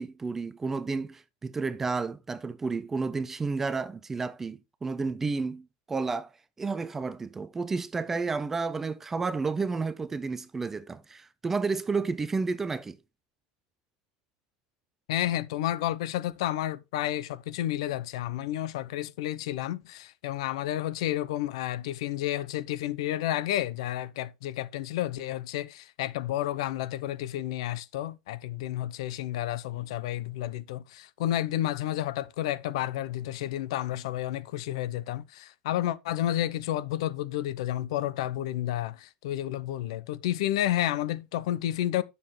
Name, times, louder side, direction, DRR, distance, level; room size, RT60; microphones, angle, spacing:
voice 1, 0.0-6.3 6.6-13.0, right 4 dB, 10° right, 0.4 m, -31 dB
voice 2, 15.1-42.0, left 13 dB, 80° left, 0.7 m, -31 dB
9.9 x 6.8 x 3.2 m
supercardioid pair, 175°, 3 cm